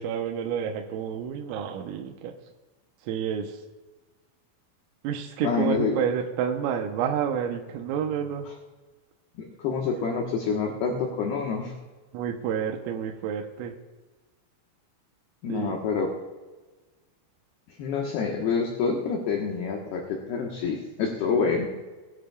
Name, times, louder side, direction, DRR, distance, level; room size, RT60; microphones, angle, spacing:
voice 1, 0.0-2.3 3.1-3.6 5.0-8.5 9.9-10.1 12.1-13.7 15.5-15.8 21.6-21.7, right 8 dB, 85° right, 2 dB, 3.5 m, -29 dB
voice 2, 5.4-6.0 9.4-11.7 15.4-16.1 17.8-21.7, left 5 dB, 70° left, 0 dB, 2.7 m, -27 dB
21.5 x 10.5 x 2.3 m, 1.3 s
omnidirectional pair, 5.8 m